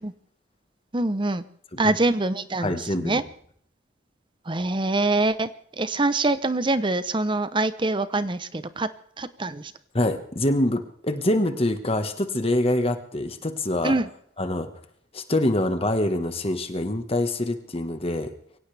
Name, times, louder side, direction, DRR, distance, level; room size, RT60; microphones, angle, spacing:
voice 1, 0.9-1.4 1.8-3.2 4.5-5.5 5.8-8.9 9.2-9.7 13.8-14.1, right 2 dB, 25° right, 13 dB, 0.8 m, -24 dB
voice 2, 2.6-3.2 9.9-13.9 14.4-14.7 15.1-18.3, left 1 dB, 30° left, 8 dB, 1.5 m, -25 dB
24.0 x 16.5 x 3.5 m, 0.63 s
head